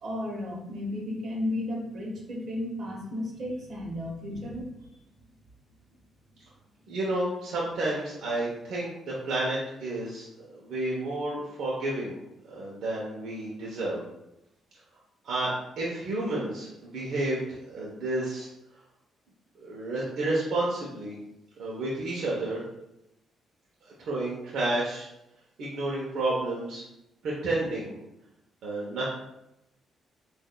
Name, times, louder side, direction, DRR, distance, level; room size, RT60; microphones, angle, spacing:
voice 1, 0.0-4.7, left 1 dB, 55° right, -1 dB, 1.2 m, -33 dB
voice 2, 6.9-10.3 10.5-12.2 12.5-14.0 15.2-18.5 19.6-21.1 21.6-22.6 24.0-25.1 25.6-26.8 27.2-28.0 28.6-29.1, right 2 dB, 75° right, -5 dB, 0.9 m, -30 dB
6.3 x 2.6 x 2.2 m, 0.87 s
cardioid pair, 90°, 0 cm